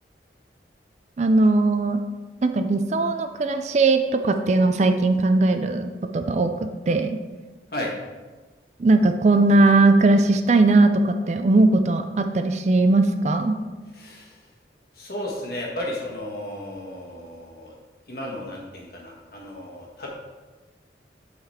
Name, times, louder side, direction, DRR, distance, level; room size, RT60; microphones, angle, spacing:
voice 1, 1.2-2.0 2.4-7.2 8.8-13.6, right 2 dB, 40° right, 7 dB, 0.4 m, -19 dB
voice 2, 13.9-14.3 15.0-17.7 18.1-20.1, left 1 dB, 55° left, -2 dB, 1.5 m, -34 dB
7.7 x 4.0 x 4.2 m, 1.3 s
head